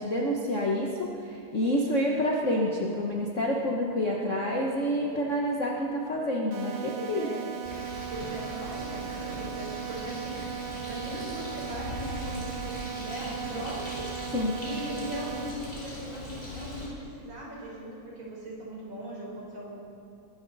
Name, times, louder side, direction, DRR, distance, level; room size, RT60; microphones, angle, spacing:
voice 1, 0.0-7.3 14.3-14.6, equal, 70° left, -2 dB, 0.7 m, -28 dB
sound 1, 6.5-15.5, right 9 dB, 75° right, 2.3 m, -38 dB
voice 2, 7.1-7.5 8.1-14.1 14.6-19.8, equal, 40° right, -4 dB, 4.9 m, -39 dB
Bird, 7.6-16.9, left 1 dB, 15° left, 4.3 m, -40 dB
22.5 x 13.0 x 4.1 m, 2.8 s
omnidirectional pair, 3.3 m